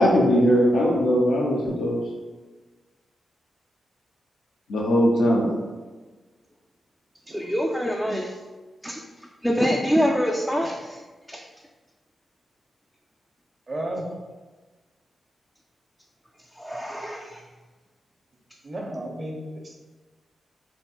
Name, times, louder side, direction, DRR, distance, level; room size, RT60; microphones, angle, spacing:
voice 1, 0.0-2.0 4.7-5.5, equal, 90° left, -3 dB, 0.8 m, -20 dB
voice 2, 7.3-8.3 8.8-9.0 9.4-11.0 11.3-11.4 16.6-17.3, equal, ahead, -1 dB, 0.4 m, -25 dB
voice 3, 13.7-14.1 18.6-19.7, right 1 dB, 40° right, -1 dB, 0.9 m, -33 dB
3.9 x 2.0 x 4.2 m, 1.3 s
cardioid pair, 65°, 0 cm